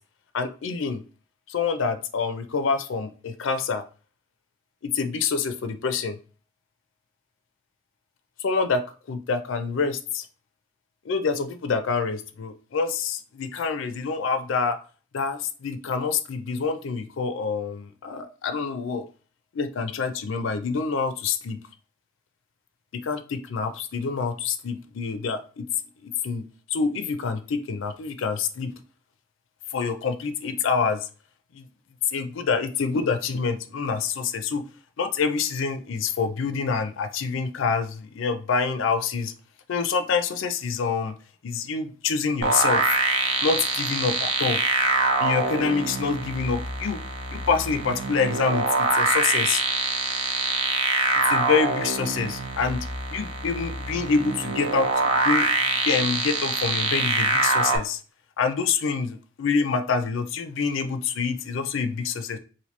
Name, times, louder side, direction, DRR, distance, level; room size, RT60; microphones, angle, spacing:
voice 1, 0.3-1.0 1.5-3.8 4.8-6.2 8.4-10.3 11.1-14.8 15.1-19.0 19.5-21.6 23.0-25.6 26.0-28.7 29.7-31.0 31.5-31.6 32.1-34.6 35.0-39.3 39.7-41.1 41.4-43.0 43.4-44.6 45.2-47.0 47.3-49.6 51.3-52.9 53.1-58.0 58.4-62.4, left 5 dB, 70° left, 9 dB, 0.4 m, -26 dB
sound 1, 42.4-57.8, right 3 dB, 75° right, 0.6 m, -25 dB
2.9 x 2.7 x 3.1 m, 0.37 s
head